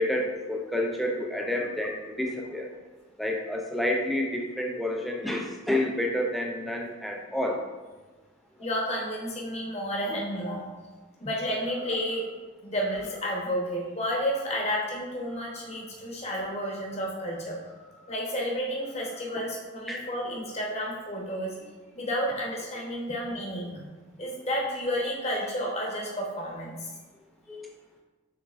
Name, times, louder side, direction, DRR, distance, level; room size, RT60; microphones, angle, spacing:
voice 1, 0.0-2.7 3.2-7.6 19.3-19.4 19.9-20.0 27.5-27.7, left 1 dB, ahead, 0 dB, 0.4 m, -29 dB
voice 2, 8.6-10.7 11.2-12.3 12.6-21.7 21.9-23.8 24.2-26.9, equal, 35° left, -2 dB, 1.0 m, -31 dB
6.4 x 3.4 x 2.4 m, 1.3 s
head